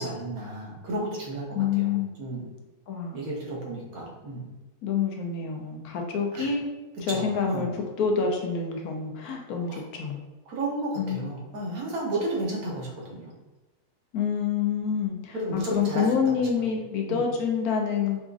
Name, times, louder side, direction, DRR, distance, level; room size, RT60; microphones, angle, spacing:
voice 1, 0.0-2.5 3.1-4.5 6.3-6.5 7.1-7.7 9.7-9.8 10.5-13.3 15.3-16.8 17.1-17.2, right 1 dB, 80° right, -3 dB, 1.4 m, -33 dB
voice 2, 1.5-2.1 2.9-3.2 4.8-6.6 7.0-10.2 11.0-11.3 14.1-18.2, left 6 dB, 85° left, 2 dB, 1.1 m, -27 dB
4.9 x 2.4 x 2.5 m, 1.1 s
omnidirectional pair, 1.6 m